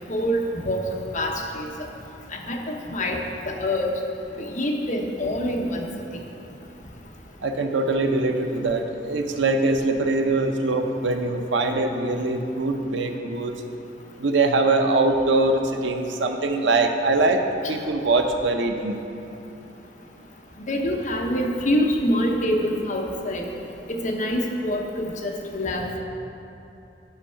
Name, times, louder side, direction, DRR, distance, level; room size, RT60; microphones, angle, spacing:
voice 1, 0.1-0.8 1.1-1.7 2.3-3.2 3.5-3.9 4.4-5.9 20.7-23.5 23.9-26.0, equal, 40° left, 1 dB, 0.9 m, -25 dB
voice 2, 7.4-13.5 14.2-17.4 17.7-19.0, right 2 dB, 85° right, 5 dB, 0.7 m, -22 dB
8.8 x 5.5 x 5.6 m, 2.9 s
head